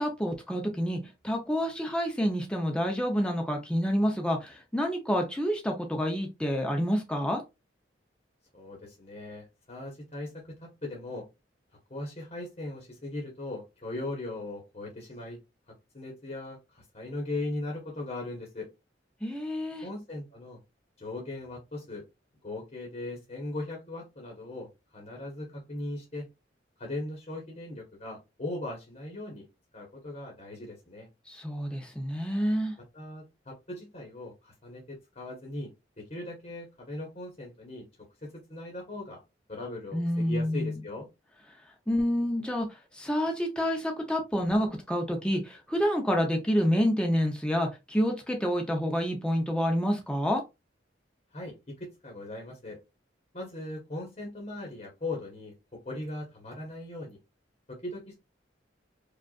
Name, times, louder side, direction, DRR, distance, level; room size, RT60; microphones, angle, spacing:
voice 1, 0.0-7.4 19.2-19.9 31.3-32.8 39.9-40.8 41.9-50.4, equal, 5° left, 0.6 m, -28 dB
voice 2, 8.5-11.3 11.9-15.4 15.9-18.7 19.8-20.6 21.0-22.0 22.4-26.3 26.8-29.5 29.7-31.1 32.9-35.7 36.0-37.8 38.2-39.2 39.5-41.1 51.3-52.8 53.3-55.5 55.8-57.2 57.7-58.2, left 2 dB, 40° left, 1.1 m, -39 dB
4.9 x 2.4 x 2.3 m
head